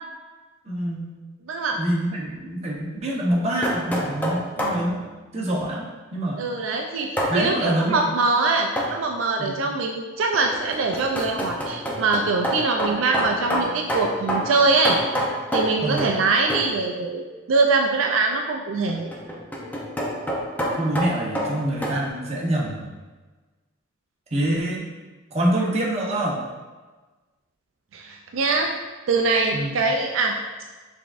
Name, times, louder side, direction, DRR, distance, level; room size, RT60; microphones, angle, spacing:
voice 1, 0.7-1.0 1.7-5.0 5.3-6.4 7.3-8.0 9.4-9.7 15.8-16.1 20.7-22.9 24.3-24.8 25.3-26.4 29.5-29.8, right 1 dB, 35° right, -4 dB, 0.9 m, -25 dB
voice 2, 1.5-1.8 6.4-15.0 15.5-19.1 27.9-28.7 29.1-30.4, right 3 dB, 80° right, 2 dB, 0.4 m, -23 dB
sound 1, 3.3-4.9 7.2-7.4 8.8-9.0 10.3-16.2 16.5-16.8 18.9-22.0, equal, 10° left, 0.6 m, -27 dB
5.9 x 3.6 x 2.5 m, 1.3 s
head